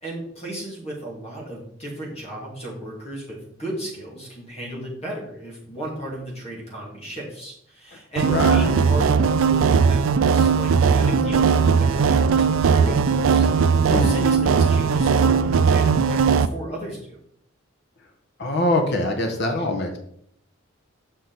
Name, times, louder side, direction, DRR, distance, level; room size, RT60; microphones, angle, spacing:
voice 1, 0.0-17.2, right 1 dB, 30° left, -3 dB, 2.5 m, -34 dB
sound 1, 8.2-16.5, right 6 dB, 75° right, 0.4 m, -18 dB
voice 2, 8.3-8.7 13.9-14.3 18.4-20.0, left 2 dB, 55° left, 3 dB, 1.2 m, -24 dB
6.6 x 6.1 x 4.0 m, 0.69 s
head